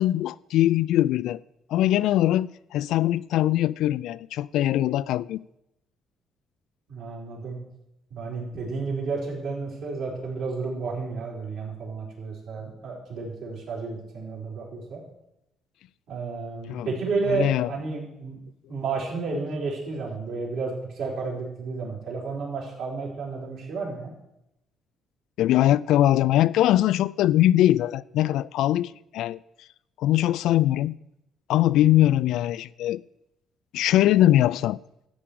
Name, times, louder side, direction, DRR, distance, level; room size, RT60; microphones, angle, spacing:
voice 1, 0.0-1.4 1.7-5.4 16.7-16.9 17.3-17.7 25.4-29.4 30.0-30.9 31.5-33.0 33.7-34.8, left 13 dB, 75° left, 0.3 m, -22 dB
voice 2, 6.9-7.6 8.1-15.0 16.1-18.4 18.7-24.1, right 4 dB, 65° right, 4.4 m, -31 dB
13.0 x 4.9 x 8.6 m
cardioid pair, 150°, 0 cm